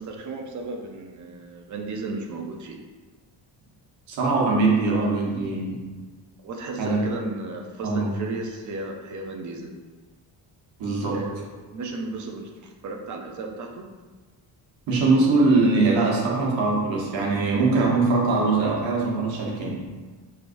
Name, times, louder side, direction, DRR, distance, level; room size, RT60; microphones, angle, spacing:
voice 1, 0.0-2.8 6.4-9.7 11.1-11.4 11.7-13.9, right 3 dB, 40° right, 2 dB, 0.6 m, -34 dB
voice 2, 4.1-5.8 6.8-7.0 7.8-8.2 10.8-11.2 14.9-19.8, right 3 dB, 85° right, -3 dB, 1.2 m, -22 dB
4.9 x 3.4 x 2.5 m, 1.3 s
cardioid pair, 155°, 44 cm